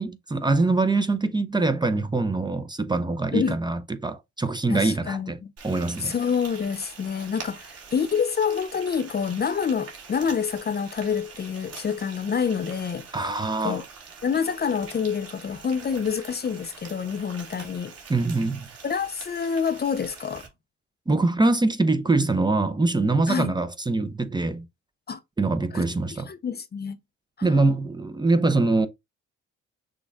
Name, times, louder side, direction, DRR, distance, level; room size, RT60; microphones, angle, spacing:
voice 1, 0.0-5.4 5.6-6.1 13.1-13.8 18.1-18.6 21.1-24.6 25.4-26.3 27.4-28.9, right 3 dB, 15° right, 0.6 m, -23 dB
voice 2, 4.7-5.3 6.0-13.1 13.6-13.8 14.2-17.9 18.8-20.5 23.3-23.5 25.1-25.2 25.7-25.8 26.3-27.0 27.4-27.5, left 6 dB, 35° left, 0.6 m, -27 dB
Frying (food), 5.6-20.5, right 5 dB, 55° right, 2.3 m, -44 dB
6.3 x 2.4 x 3.4 m
cardioid pair, 90°, 30 cm